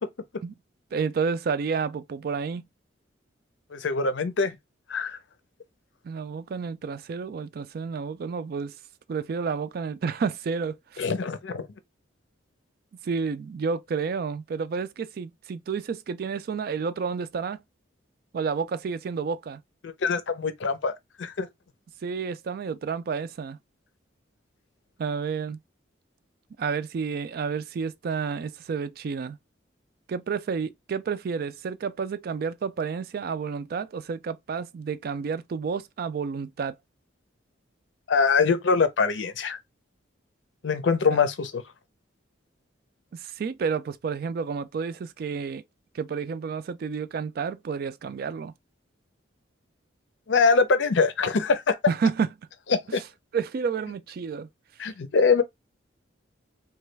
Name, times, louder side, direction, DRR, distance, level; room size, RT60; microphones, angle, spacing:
voice 1, 0.9-2.6 6.0-8.8 9.1-11.1 13.0-17.6 18.3-19.6 22.0-23.6 25.0-25.6 26.6-29.4 30.1-36.8 43.1-45.6 45.9-48.5 51.9-52.3 52.9-53.0 53.3-54.5, right 5 dB, 50° right, 0.3 m, -30 dB
voice 2, 3.7-4.6 4.9-5.2 11.0-11.7 19.8-21.5 38.1-39.6 40.6-41.6 50.3-51.8 52.7-53.0 54.8-55.4, left 4 dB, 75° left, 0.6 m, -23 dB
3.1 x 2.3 x 3.2 m
head